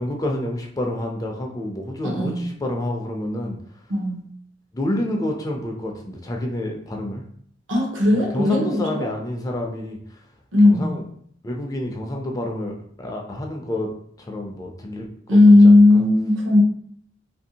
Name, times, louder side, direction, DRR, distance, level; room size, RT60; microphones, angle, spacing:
voice 1, 0.0-3.6 4.7-7.3 8.1-10.2 10.6-11.0 11.4-13.9 14.2-15.4 15.6-16.0, left 1 dB, 20° left, 1 dB, 0.3 m, -28 dB
voice 2, 2.0-2.5 3.9-4.3 7.7-9.1 10.5-10.9 15.3-16.6, left 2 dB, 80° right, -1 dB, 0.8 m, -15 dB
2.7 x 2.6 x 2.7 m, 0.63 s
head